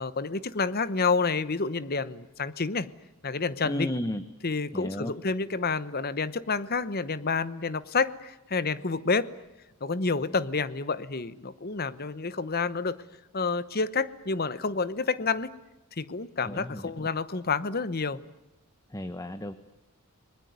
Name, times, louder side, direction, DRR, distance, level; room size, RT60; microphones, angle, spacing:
voice 1, 0.0-2.9 3.2-3.9 4.4-9.3 9.8-13.0 13.3-15.5 16.0-18.2, left 4 dB, 45° left, 15 dB, 1.0 m, -29 dB
voice 2, 3.6-4.2 4.7-5.1 16.4-17.1 18.9-19.5, left 1 dB, 15° left, 11 dB, 0.9 m, -33 dB
29.5 x 20.5 x 9.5 m, 0.98 s
head